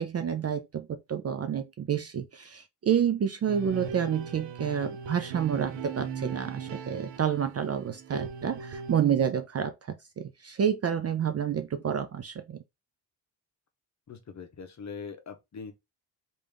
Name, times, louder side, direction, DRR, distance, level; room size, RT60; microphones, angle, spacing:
voice 1, 0.0-12.6, right 8 dB, 35° right, 0.4 m, -29 dB
sound 1, 3.5-9.0, right 5 dB, 70° right, 0.7 m, -38 dB
voice 2, 14.1-15.7, left 5 dB, 40° left, 0.8 m, -42 dB
3.4 x 2.6 x 3.3 m
cardioid pair, 95°, 44 cm